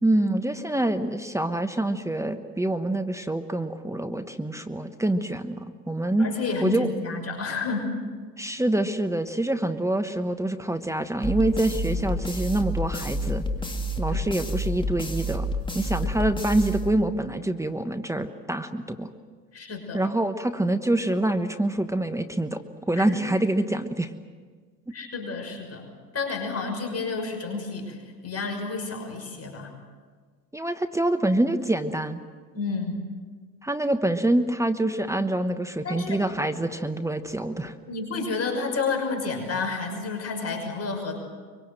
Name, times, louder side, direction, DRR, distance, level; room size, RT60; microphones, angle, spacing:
voice 1, 0.0-6.3 6.6-6.9 8.4-13.4 14.0-15.5 15.7-19.1 19.9-22.6 22.9-24.1 30.5-32.2 33.6-37.7, right 1 dB, 5° right, 8 dB, 1.2 m, -26 dB
voice 2, 6.2-7.9 14.1-14.2 16.0-16.1 19.5-20.0 22.9-23.3 24.9-25.8 26.1-28.0 28.2-29.7 32.5-32.9 35.8-36.5 37.9-41.2, left 4 dB, 30° left, 3 dB, 6.0 m, -30 dB
sound 1, 11.2-17.3, equal, 10° left, 2.3 m, -29 dB
24.5 x 24.0 x 7.8 m, 1.5 s
hypercardioid pair, 90°, 49 cm